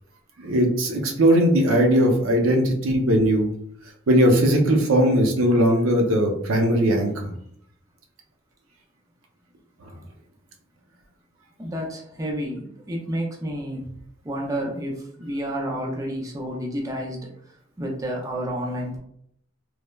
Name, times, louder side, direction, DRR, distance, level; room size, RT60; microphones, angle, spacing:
voice 1, 0.4-3.5 4.1-7.3, equal, 80° right, 2 dB, 0.6 m, -19 dB
voice 2, 11.6-13.9 14.2-17.3 17.8-19.0, equal, 15° right, -1 dB, 0.4 m, -30 dB
3.1 x 2.0 x 2.2 m, 0.69 s
head